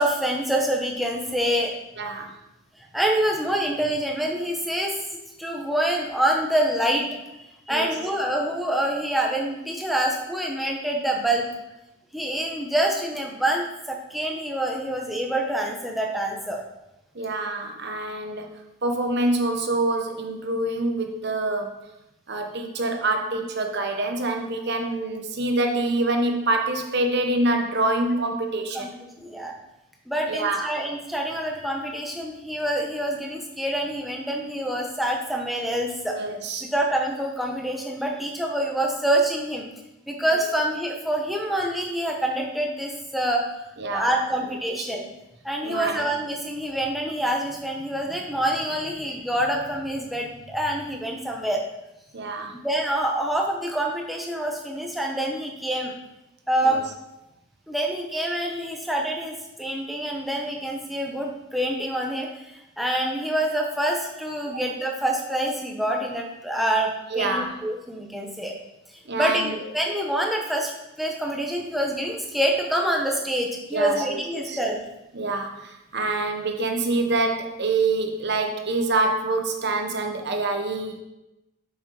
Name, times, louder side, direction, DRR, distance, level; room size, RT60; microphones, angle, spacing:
voice 1, 0.0-1.7 2.8-4.9 5.4-7.0 7.4-11.5 12.1-16.6 24.9-25.0 28.7-28.9 29.2-29.5 30.1-36.2 36.7-39.7 40.1-43.4 43.9-45.1 45.4-51.6 52.6-55.9 56.5-56.8 57.7-68.5 69.2-70.7 71.0-74.8, right 1 dB, ahead, 0 dB, 1.0 m, -26 dB
voice 2, 2.0-2.3 7.7-7.9 17.1-21.8 22.3-28.9 30.3-30.7 36.1-36.7 40.3-40.5 43.8-44.1 44.7-44.9 45.6-46.0 52.1-52.5 56.6-56.8 67.1-67.6 69.1-69.6 73.7-74.6 75.1-81.0, right 2 dB, 50° right, 4 dB, 1.0 m, -26 dB
7.8 x 6.2 x 4.8 m, 0.95 s
head